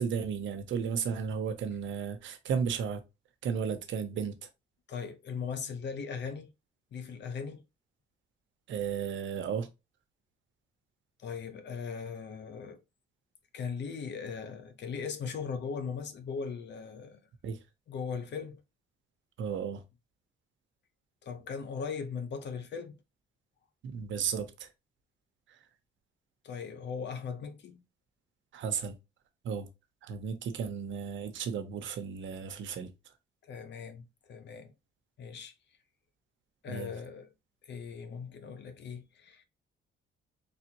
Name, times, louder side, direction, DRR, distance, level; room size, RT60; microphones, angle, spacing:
voice 1, 0.0-3.0 3.4-4.5 8.7-9.7 17.4-17.6 19.4-19.8 23.8-24.7 25.5-25.6 28.5-28.9 29.4-29.7 30.0-32.9 36.7-36.9, right 6 dB, 70° right, 0.9 m, -34 dB
voice 2, 4.9-6.5 6.9-7.6 11.2-12.8 13.5-17.2 17.9-18.6 21.2-23.0 26.4-27.8 33.4-34.7 35.2-35.5 36.6-37.3 37.6-39.4, left 6 dB, 60° left, 0.9 m, -39 dB
4.2 x 3.4 x 2.9 m
cardioid pair, 90°, 20 cm